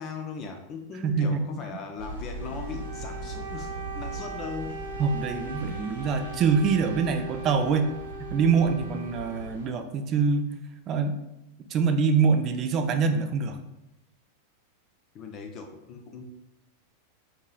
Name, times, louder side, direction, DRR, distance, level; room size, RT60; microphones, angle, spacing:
voice 1, 0.0-4.8 15.1-16.2, left 5 dB, 35° left, 4 dB, 0.4 m, -39 dB
voice 2, 1.0-1.4 5.0-7.9 8.3-10.6 10.9-11.2 11.7-13.6, right 5 dB, 30° right, 7 dB, 0.4 m, -24 dB
sound 1, 2.0-9.7, right 2 dB, 85° right, 0.9 m, -40 dB
Wind instrument woodwind instrument, 2.4-9.9, right 2 dB, 60° right, 0.8 m, -40 dB
4.7 x 2.6 x 2.3 m, 0.87 s
figure-of-eight pair, 90°, 0 cm